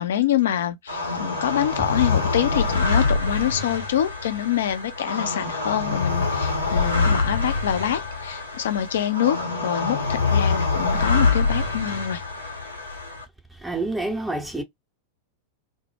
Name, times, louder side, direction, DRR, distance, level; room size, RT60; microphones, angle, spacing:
voice 1, 0.0-12.2, left 10 dB, 60° left, 0.4 m, -25 dB
sound 1, 0.9-13.2, left 4 dB, 85° left, 0.7 m, -25 dB
voice 2, 13.6-14.6, right 2 dB, 5° right, 0.6 m, -27 dB
2.1 x 2.0 x 3.1 m
figure-of-eight pair, 90°, 0 cm